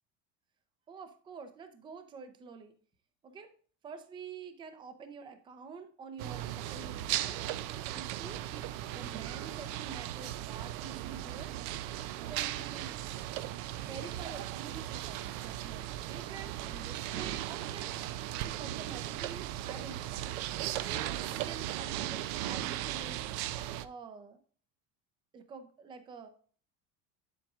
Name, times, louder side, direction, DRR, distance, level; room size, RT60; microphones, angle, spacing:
voice 1, 0.9-2.7 3.2-3.5 3.8-7.4 7.9-11.6 12.3-13.0 13.8-18.0 18.5-23.2 23.8-24.4 25.3-26.3, right 5 dB, 15° right, 8 dB, 0.5 m, -48 dB
sound 1, 6.2-23.9, right 13 dB, 80° right, 0.6 m, -37 dB
9.0 x 7.7 x 2.4 m, 0.43 s
cardioid pair, 180°, 38 cm